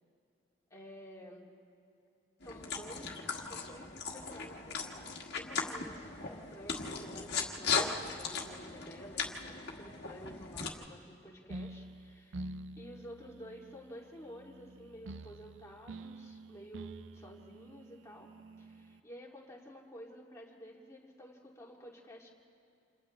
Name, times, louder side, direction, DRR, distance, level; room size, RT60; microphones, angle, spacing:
voice 1, 0.7-1.5 2.4-18.3 18.6-22.3, equal, 15° left, -3 dB, 2.6 m, -52 dB
sound 1, 2.4-10.7, left 5 dB, 60° left, 1.7 m, -38 dB
sound 2, 11.5-19.0, right 2 dB, 90° right, 0.5 m, -48 dB
29.5 x 28.0 x 3.3 m, 2.5 s
head